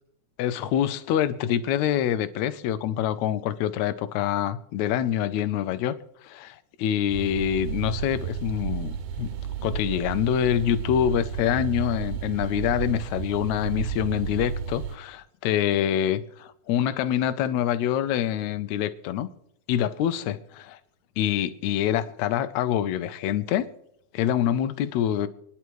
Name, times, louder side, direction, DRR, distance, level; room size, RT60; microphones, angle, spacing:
voice 1, 0.4-6.0 6.2-9.3 9.6-19.3 19.7-20.8 21.2-23.7 24.1-25.3, left 10 dB, 75° left, 12 dB, 1.8 m, -26 dB
sound 1, 7.1-15.0, right 7 dB, 90° right, 2.5 m, -32 dB
26.0 x 10.5 x 3.1 m, 0.74 s
omnidirectional pair, 3.7 m